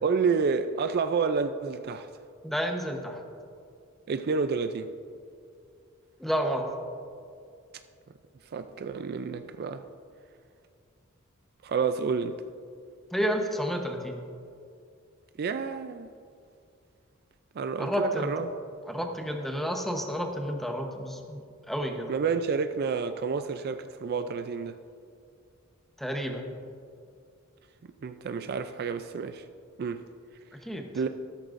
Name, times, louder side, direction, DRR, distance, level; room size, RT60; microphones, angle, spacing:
voice 1, 0.0-2.1 4.1-4.9 8.5-9.8 11.6-12.4 15.4-16.1 17.6-18.5 22.1-24.8 28.0-29.4 29.8-30.0 30.9-31.1, right 5 dB, 50° right, 9 dB, 0.4 m, -29 dB
voice 2, 2.4-3.2 6.2-6.7 13.1-14.2 17.8-18.3 18.9-21.4 21.7-22.1 26.0-26.5 30.6-30.9, equal, ahead, 2 dB, 0.9 m, -30 dB
14.0 x 13.0 x 2.5 m, 2.4 s
head